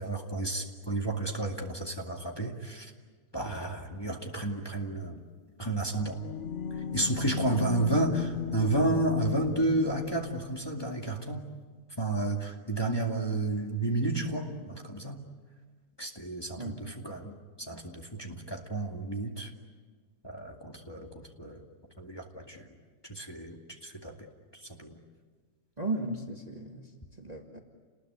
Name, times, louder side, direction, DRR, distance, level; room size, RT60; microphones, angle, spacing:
voice 1, 0.0-2.9 3.3-5.2 5.6-6.2 6.9-11.5 12.0-15.2 16.0-17.3 17.7-19.5 20.2-21.1 21.4-21.6 22.0-22.6 23.1-24.1 24.8-25.0, right 2 dB, 15° left, 1 dB, 2.3 m, -31 dB
sound 1, 5.8-10.6, left 7 dB, 50° left, 1.2 m, -36 dB
voice 2, 25.8-27.6, right 2 dB, 25° right, 2 dB, 1.9 m, -36 dB
29.5 x 20.5 x 9.6 m, 1.5 s
omnidirectional pair, 1.7 m